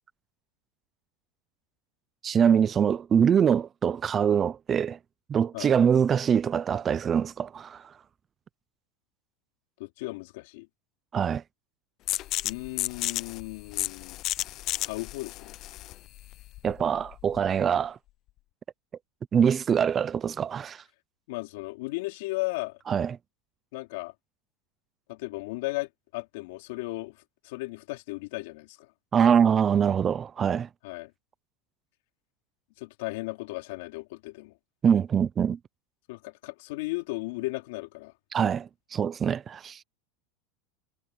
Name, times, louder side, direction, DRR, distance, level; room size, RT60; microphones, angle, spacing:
voice 1, 2.2-5.0 5.3-7.8 11.1-11.4 16.6-18.0 19.3-20.8 22.9-23.2 29.1-30.7 34.8-35.6 38.3-39.8, right 7 dB, 25° right, 0.6 m, -24 dB
voice 2, 9.8-10.7 12.4-14.2 14.8-15.6 21.3-22.8 23.7-24.1 25.1-27.2 27.4-28.9 30.8-31.1 32.8-34.5 36.1-38.1, left 22 dB, 75° left, 3.6 m, -35 dB
sound 1, 12.1-17.6, left 16 dB, 45° left, 0.5 m, -33 dB
supercardioid pair, 145°, 0 cm